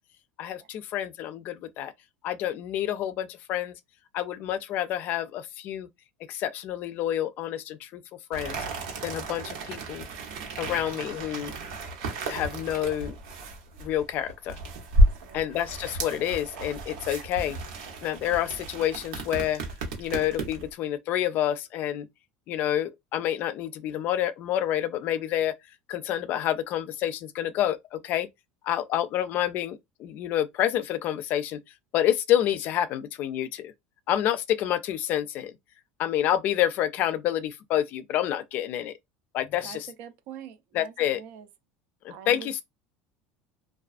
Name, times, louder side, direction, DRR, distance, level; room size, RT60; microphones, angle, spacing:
voice 1, 0.4-1.9 2.2-3.7 4.1-5.9 6.3-8.0 8.3-8.6 9.0-10.1 10.6-11.5 12.3-13.2 13.8-14.6 15.3-17.6 18.0-19.6 20.0-22.1 22.5-25.5 25.9-28.3 28.6-31.6 31.9-33.7 34.1-35.5 36.0-38.9 39.3-39.8 40.7-41.2 42.0-42.6, left 11 dB, 55° left, 0.3 m, -28 dB
sound 1, 8.3-20.7, right 1 dB, 85° right, 0.8 m, -31 dB
voice 2, 14.9-15.4 39.6-41.5 42.1-42.6, right 8 dB, 65° right, 0.5 m, -45 dB
2.3 x 2.3 x 2.4 m
supercardioid pair, 115°, 4 cm